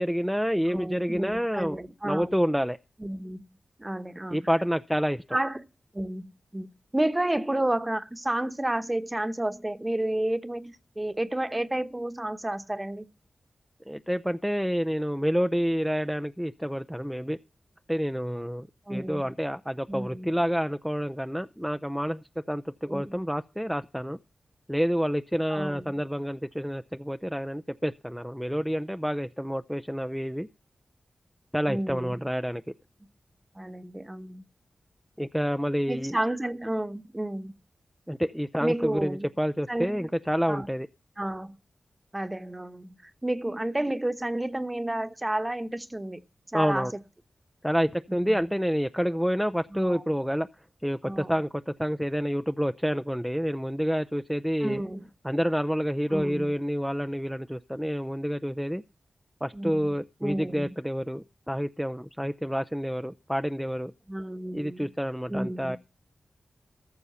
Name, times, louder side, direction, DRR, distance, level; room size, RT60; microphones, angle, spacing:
voice 1, 0.0-2.8 4.3-5.2 13.9-17.4 17.9-24.2 24.7-30.5 31.5-32.6 35.2-36.2 38.1-40.9 46.5-46.9 47.6-50.5 50.8-54.8 55.2-58.8 59.4-63.9 64.5-65.8, equal, ahead, 0.5 m, -28 dB
voice 2, 0.7-2.4 3.0-3.4 3.8-4.5 5.3-5.6 5.9-6.7 6.9-13.1 18.9-19.3 19.9-20.3 22.9-23.2 25.5-25.9 31.7-32.1 33.5-34.4 35.9-37.5 38.6-39.3 39.7-40.1 40.5-40.7 41.2-41.6 42.1-46.2 46.5-46.9 48.1-48.4 49.7-50.0 51.0-51.3 54.6-55.1 56.1-56.5 59.5-59.9 60.2-60.7 64.1-64.9 65.3-65.8, right 1 dB, 20° right, 1.1 m, -31 dB
14.5 x 6.8 x 5.6 m
cardioid pair, 45°, 0 cm